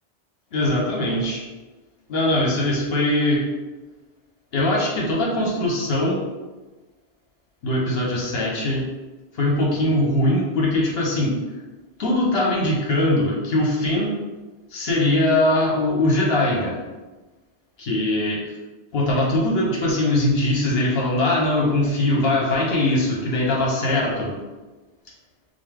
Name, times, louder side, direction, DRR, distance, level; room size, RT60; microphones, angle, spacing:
voice 1, 0.5-1.4 2.1-3.4 4.5-6.2 7.6-8.8 9.3-11.3 12.0-14.1 14.7-16.8 17.8-18.4 18.9-24.3, left 1 dB, 70° left, -3 dB, 1.2 m, -21 dB
5.2 x 2.0 x 3.6 m, 1.2 s
omnidirectional pair, 1.1 m